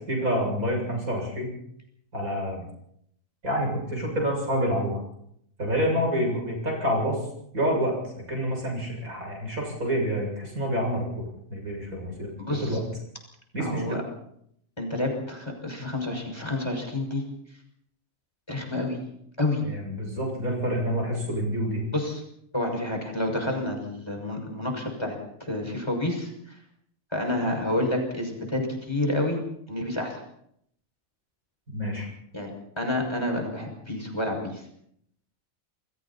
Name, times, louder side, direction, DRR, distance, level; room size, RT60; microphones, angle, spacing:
voice 1, 0.1-1.6 2.1-2.6 3.4-5.0 5.6-7.2 7.5-7.9 8.3-11.2 11.5-12.8 13.5-14.0 19.6-21.8 31.7-32.1, equal, 90° right, 0 dB, 8.0 m, -28 dB
voice 2, 12.4-12.8 13.6-14.0 14.8-17.2 18.5-19.0 19.4-19.6 21.9-22.2 22.5-25.2 25.5-26.6 27.1-29.4 29.7-30.2 32.3-32.5 32.8-34.6, left 1 dB, 20° left, 2 dB, 6.4 m, -29 dB
29.5 x 21.5 x 4.3 m, 0.72 s
omnidirectional pair, 1.4 m